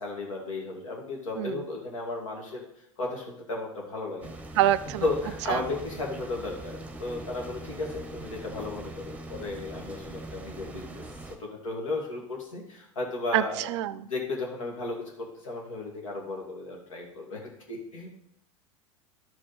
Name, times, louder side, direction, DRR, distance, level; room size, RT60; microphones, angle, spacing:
voice 1, 0.0-2.6 3.0-4.3 5.0-11.0 11.4-13.7 13.9-17.4 17.7-18.1, left 2 dB, 75° left, -1 dB, 2.4 m, -34 dB
sound 1, 4.2-11.4, right 2 dB, 10° right, 1.1 m, -42 dB
voice 2, 4.6-5.0 5.5-5.6 13.3-14.1, right 13 dB, 60° right, 16 dB, 0.4 m, -26 dB
12.0 x 5.2 x 4.4 m, 0.77 s
figure-of-eight pair, 80°, 17 cm